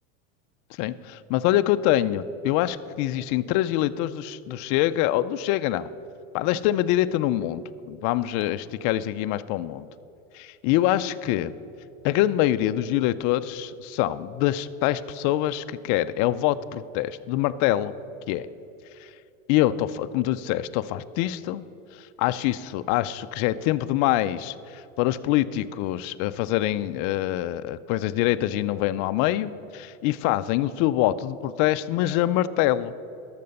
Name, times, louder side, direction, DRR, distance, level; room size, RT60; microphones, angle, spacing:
voice 1, 0.8-5.9 6.3-9.9 10.3-11.5 12.0-17.9 18.3-18.5 19.5-21.6 22.2-32.9, left 14 dB, 45° left, 12 dB, 0.4 m, -25 dB
12.0 x 6.8 x 5.3 m, 2.8 s
supercardioid pair, 115°, 41 cm